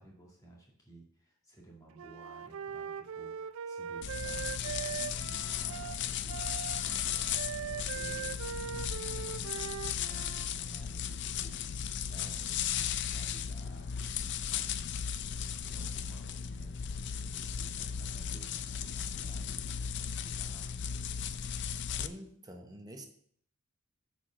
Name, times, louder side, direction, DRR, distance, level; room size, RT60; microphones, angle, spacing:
voice 1, 0.0-14.8 15.0-20.8, right 2 dB, 15° left, -3 dB, 2.1 m, -56 dB
Wind instrument woodwind instrument, 2.0-10.5, right 8 dB, 65° right, 0.4 m, -41 dB
sound 1, 4.0-22.1, left 8 dB, 50° left, 0.4 m, -36 dB
voice 2, 15.4-15.8 22.0-23.1, right 1 dB, 15° right, 4 dB, 0.7 m, -48 dB
6.9 x 4.8 x 6.2 m, 0.65 s
head